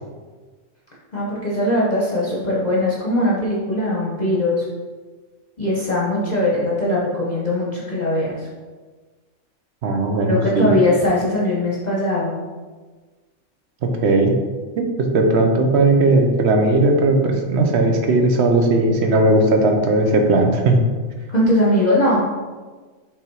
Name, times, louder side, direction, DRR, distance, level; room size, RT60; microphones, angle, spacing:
voice 1, 1.1-4.6 5.6-8.4 10.2-12.3 21.3-22.2, left 1 dB, 35° left, -6 dB, 1.0 m, -20 dB
voice 2, 9.8-10.8 14.0-14.3 14.8-14.9 15.1-20.8, right 2 dB, 55° right, 3 dB, 1.0 m, -17 dB
5.6 x 3.6 x 4.7 m, 1.4 s
omnidirectional pair, 1.4 m